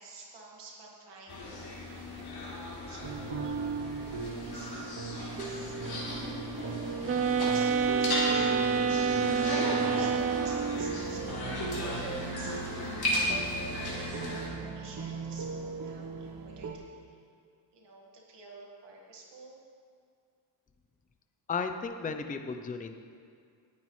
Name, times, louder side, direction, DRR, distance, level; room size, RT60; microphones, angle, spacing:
voice 1, 0.0-3.6 4.2-12.6 13.2-17.3 17.7-19.6, right 3 dB, 65° right, -2 dB, 1.9 m, -52 dB
sound 1, 1.3-14.5, left 1 dB, 55° left, 3.3 m, -36 dB
sound 2, 3.0-16.7, right 4 dB, 50° right, 1.0 m, -37 dB
sound 3, 7.0-10.9, right 6 dB, 35° right, 0.4 m, -28 dB
voice 2, 21.5-22.9, left 5 dB, 20° left, 7 dB, 0.5 m, -34 dB
18.5 x 9.6 x 3.2 m, 2.2 s
cardioid pair, 125°, 45 cm